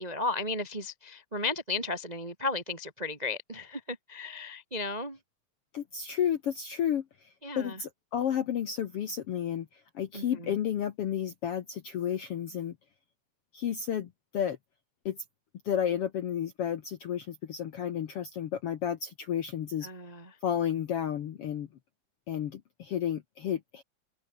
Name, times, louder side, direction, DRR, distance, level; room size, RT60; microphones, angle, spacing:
voice 1, 0.0-5.2 7.4-7.8 10.1-10.6 19.8-20.4, left 3 dB, 25° right, 0.9 m, -35 dB
voice 2, 5.7-7.3 7.6-12.7 13.5-14.6 15.0-15.2 15.6-19.9 20.4-21.7 22.3-23.8, left 9 dB, 65° left, 1.5 m, -32 dB
omnidirectional pair, 4.0 m